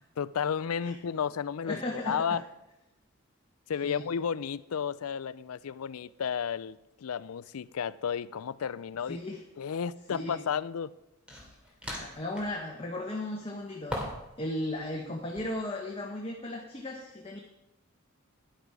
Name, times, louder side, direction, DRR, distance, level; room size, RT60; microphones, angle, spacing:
voice 1, 0.2-2.4 3.7-9.2 9.6-10.9, left 7 dB, 80° left, 0.4 m, -32 dB
voice 2, 1.6-2.4 3.8-4.0 9.1-9.4 10.1-10.4 11.9-14.0 14.4-17.4, left 1 dB, 25° left, 1.2 m, -36 dB
sound 1, 8.9-9.1 11.3-12.6 13.9-14.4 14.7-15.5, equal, 5° right, 2.6 m, -40 dB
11.5 x 10.5 x 4.8 m
head